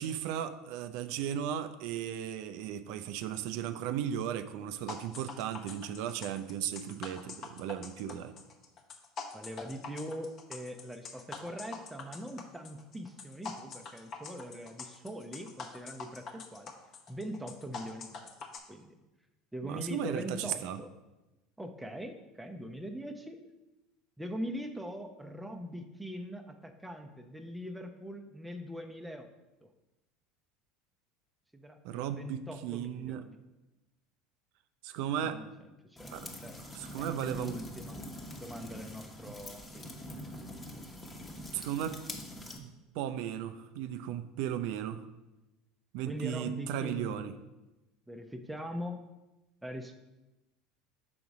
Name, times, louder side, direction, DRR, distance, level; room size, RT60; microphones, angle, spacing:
voice 1, 0.0-8.3 19.6-20.8 31.8-33.2 34.8-35.4 36.1-36.3 36.7-37.6 41.5-42.0 42.6-42.7 42.9-45.1 45.9-47.3, right 10 dB, 65° right, 11 dB, 0.4 m, -36 dB
sound 1, 4.9-18.6, left 5 dB, 45° left, 0.9 m, -44 dB
voice 2, 9.3-16.7 17.1-18.1 18.7-19.0 19.5-20.9 21.6-23.4 24.2-29.3 29.6-29.7 31.5-33.4 35.2-35.5 35.9-36.6 37.0-38.0 38.4-40.1 46.1-47.3 48.1-49.0 49.6-50.0, equal, 5° right, 5 dB, 0.6 m, -42 dB
sound 2, 36.0-42.6, left 1 dB, 20° left, 1.1 m, -44 dB
5.9 x 3.9 x 4.8 m, 1.0 s
hypercardioid pair, 75°, 0 cm